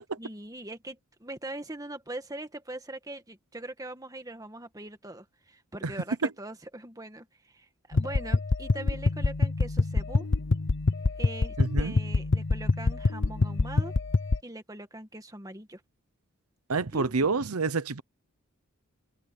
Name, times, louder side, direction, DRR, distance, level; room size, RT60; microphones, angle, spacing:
voice 1, 0.2-10.3 11.2-13.9 14.4-15.8 16.9-17.1, right 1 dB, 15° right, 1.8 m, -41 dB
sound 1, 7.9-14.4, left 3 dB, 55° left, 0.7 m, -26 dB
voice 2, 11.6-11.9 16.7-18.0, right 4 dB, 90° right, 0.9 m, -28 dB
head